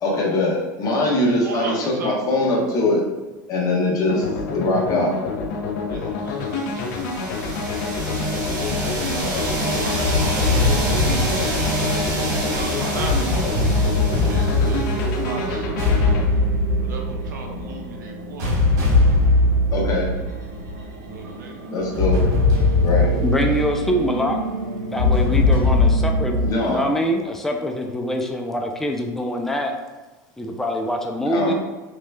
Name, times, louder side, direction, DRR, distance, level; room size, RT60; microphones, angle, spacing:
voice 1, 0.0-3.0 3.5-4.2 4.5-5.1 19.7-20.1 21.7-22.2 22.8-23.1 26.4-26.8 31.3-31.5, left 2 dB, 40° left, -3 dB, 1.0 m, -21 dB
voice 2, 1.3-2.2 5.8-6.9 9.1-10.8 12.2-15.7 16.8-18.5 21.1-21.6, right 4 dB, 90° right, 2 dB, 0.4 m, -36 dB
sound 1, 4.1-16.2, left 4 dB, 70° left, 0.6 m, -28 dB
sound 2, 6.6-15.4, right 1 dB, 45° right, 1.3 m, -27 dB
sound 3, 10.0-26.5, left 2 dB, 70° right, 1.1 m, -21 dB
voice 3, 23.2-24.4 24.9-29.7 30.4-31.5, equal, 5° left, 2 dB, 0.3 m, -24 dB
3.1 x 3.0 x 2.2 m, 1.2 s
hypercardioid pair, 105°, 10 cm